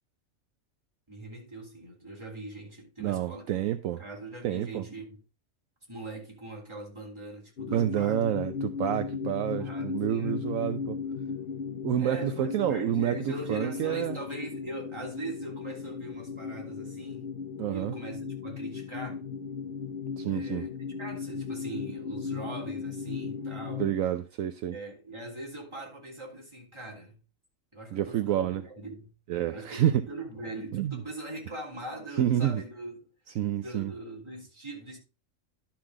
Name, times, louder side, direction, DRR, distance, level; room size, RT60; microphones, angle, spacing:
voice 1, 1.1-3.5 4.0-5.2 5.9-8.2 9.5-10.4 12.0-17.3 17.7-19.2 20.3-20.7 21.0-23.9 24.7-27.2 27.7-29.1 29.4-33.1 33.6-35.0, right 1 dB, 20° right, 3.4 m, -41 dB
voice 2, 3.0-4.0 4.4-4.8 7.7-11.0 11.8-14.2 17.6-17.9 20.2-20.7 23.8-24.7 27.9-28.6 29.3-30.0 30.7-31.0 32.2-32.6 33.4-33.9, right 11 dB, 70° right, 1.0 m, -28 dB
sound 1, 7.6-24.0, left 6 dB, 50° left, 0.9 m, -36 dB
11.5 x 5.9 x 3.7 m
omnidirectional pair, 1.5 m